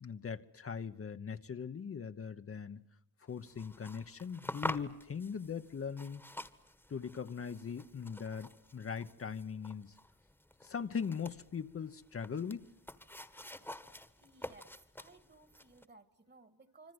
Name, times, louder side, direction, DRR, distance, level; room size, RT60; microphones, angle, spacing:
voice 1, 0.0-2.8 3.2-6.2 6.9-10.0 10.6-12.7, left 6 dB, 40° left, 1.0 m, -40 dB
sound 1, 3.3-15.9, left 1 dB, 5° left, 1.4 m, -48 dB
voice 2, 14.2-16.9, right 3 dB, 30° right, 1.9 m, -60 dB
26.0 x 25.5 x 8.0 m
wide cardioid pair, 135°, 34 cm